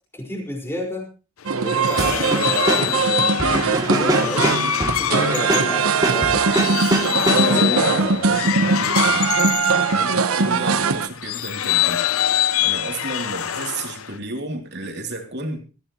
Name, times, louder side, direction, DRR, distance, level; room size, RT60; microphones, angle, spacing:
voice 1, 0.1-1.1 1.6-4.6 5.0-6.8 7.5-8.2, left 1 dB, 10° left, 1 dB, 5.1 m, -30 dB
sound 1, 1.4-10.5 11.2-14.2, left 11 dB, 85° left, 0.6 m, -25 dB
sound 2, 1.5-11.1, right 4 dB, 90° right, 1.1 m, -21 dB
sound 3, 2.0-7.7, right 1 dB, 20° right, 2.7 m, -25 dB
voice 2, 7.4-9.3 9.9-12.0 12.6-15.6, right 2 dB, 55° right, 3 dB, 3.1 m, -32 dB
20.5 x 15.0 x 3.1 m, 0.34 s
head